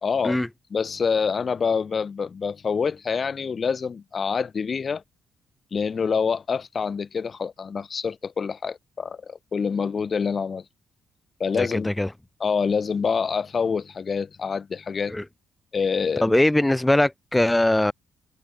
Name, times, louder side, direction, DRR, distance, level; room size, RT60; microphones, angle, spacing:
voice 1, 0.0-0.4 0.7-5.0 5.7-10.6 11.4-11.9 12.4-15.1 15.7-16.3, left 5 dB, 40° left, 2.6 m, -26 dB
voice 2, 11.5-12.1 15.1-15.2 16.2-17.9, left 1 dB, 10° left, 2.4 m, -21 dB
cardioid pair, 90°, 0 cm